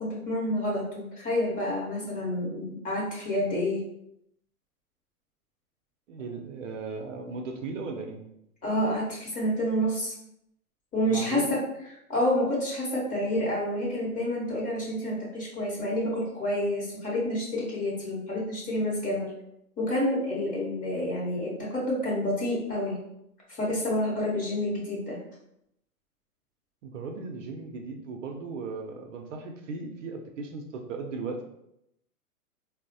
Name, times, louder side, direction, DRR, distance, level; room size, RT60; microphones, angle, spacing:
voice 1, 0.0-3.8 8.6-10.1 10.9-11.6 12.1-19.3 19.8-23.0 23.6-25.2, left 1 dB, 15° left, -5 dB, 0.8 m, -28 dB
voice 2, 6.1-8.2 11.1-11.5 26.8-31.4, right 4 dB, 55° right, 3 dB, 0.6 m, -37 dB
3.7 x 2.0 x 2.6 m, 0.80 s
hypercardioid pair, 125°, 45 cm